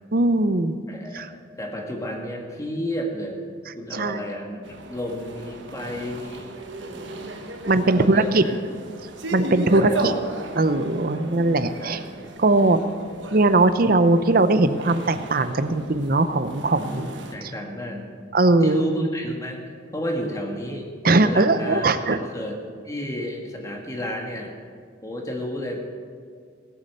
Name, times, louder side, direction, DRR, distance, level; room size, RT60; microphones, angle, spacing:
voice 1, 0.1-0.8 1.1-1.3 3.9-4.2 7.7-8.4 9.3-10.1 10.6-12.0 12.4-12.8 13.3-17.1 18.3-18.8 21.0-22.2, right 2 dB, 45° right, 11 dB, 0.7 m, -20 dB
voice 2, 0.9-3.4 3.8-4.6 4.9-6.5 6.8-7.3 7.9-8.6 9.7-10.0 11.8-12.1 16.8-18.1 18.6-19.6 19.9-20.9 21.2-22.6 22.8-24.5 25.0-25.8, equal, 15° left, 1 dB, 1.6 m, -31 dB
sound 1, 4.6-17.3, right 2 dB, 65° right, 1.3 m, -36 dB
18.0 x 8.4 x 6.7 m, 2.1 s
head